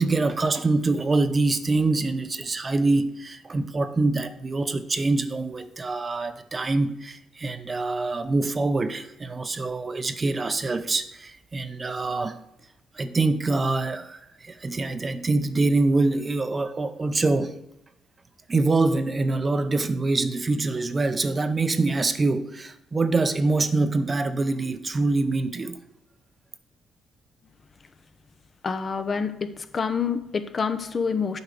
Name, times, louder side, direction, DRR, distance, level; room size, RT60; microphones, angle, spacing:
voice 1, 0.0-12.4 12.9-17.6 18.5-25.8, right 3 dB, 30° right, 10 dB, 0.7 m, -25 dB
voice 2, 28.6-31.4, left 5 dB, 40° left, 10 dB, 0.7 m, -27 dB
8.1 x 4.9 x 6.6 m, 0.85 s
cardioid pair, 90°, 0 cm